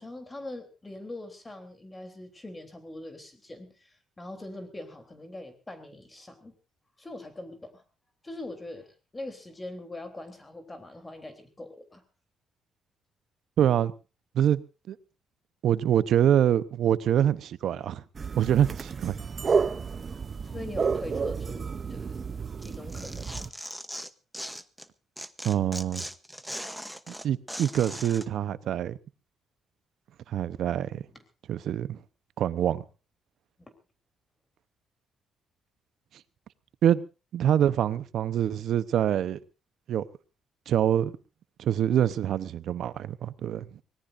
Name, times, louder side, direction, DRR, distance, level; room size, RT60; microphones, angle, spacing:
voice 1, 0.0-6.5 7.0-7.8 8.2-12.0 20.4-22.3 22.6-23.5 31.1-31.2, left 2 dB, 20° left, 3.5 m, -42 dB
voice 2, 13.6-13.9 14.3-14.6 14.9-15.0 15.6-18.0 18.4-19.2 25.4-26.0 27.1-29.0 30.3-31.0 31.5-32.0 32.4-32.8 36.8-37.0 37.3-39.4 39.9-40.0 40.7-41.2 41.6-43.7, right 10 dB, 70° right, 0.8 m, -25 dB
sound 1, 18.1-23.5, right 5 dB, 40° right, 0.7 m, -31 dB
Tearing, 22.6-24.9 25.2-28.3, equal, ahead, 0.9 m, -39 dB
24.0 x 18.0 x 2.6 m
cardioid pair, 90°, 0 cm